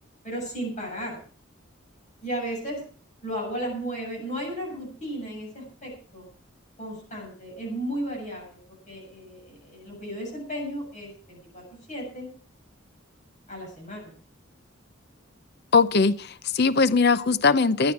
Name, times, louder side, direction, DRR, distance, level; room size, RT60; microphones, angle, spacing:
voice 1, 0.2-1.2 2.2-2.8 3.2-6.3 6.8-8.6 8.9-12.3 13.5-14.2, right 1 dB, 40° left, 7.3 m, -34 dB
voice 2, 15.7-17.9, left 4 dB, 55° left, 0.6 m, -20 dB
16.5 x 11.5 x 4.7 m
head